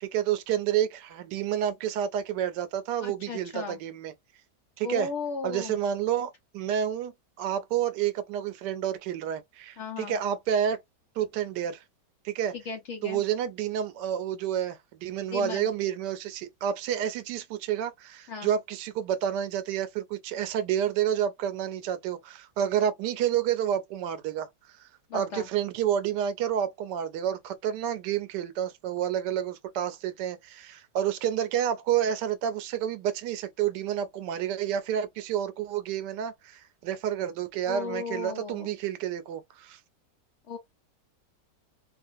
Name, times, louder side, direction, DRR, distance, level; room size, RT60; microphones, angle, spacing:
voice 1, 0.0-4.1 4.8-5.1 5.4-10.8 11.2-11.8 12.2-12.5 13.0-39.8, right 9 dB, 85° right, 1.2 m, -29 dB
voice 2, 3.0-3.8 4.8-5.8 9.8-10.2 12.5-13.2 15.3-15.7 18.3-18.5 25.1-25.5 37.7-38.7 40.5-40.6, left 5 dB, 60° left, 0.8 m, -36 dB
2.8 x 2.5 x 2.5 m
omnidirectional pair, 1.8 m